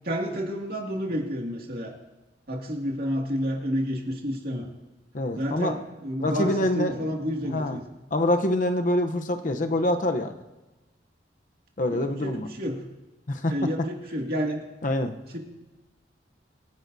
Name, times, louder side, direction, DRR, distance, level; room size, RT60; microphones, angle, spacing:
voice 1, 0.0-2.0 2.5-4.7 5.3-7.8 11.9-12.8 13.5-14.6 15.3-15.4, equal, 55° right, 0 dB, 2.3 m, -30 dB
voice 2, 5.1-5.7 6.2-7.1 7.5-7.8 8.1-10.3 11.8-12.5 13.3-13.5 14.8-15.1, left 1 dB, 45° left, 6 dB, 0.8 m, -25 dB
26.0 x 11.0 x 2.7 m, 1.1 s
head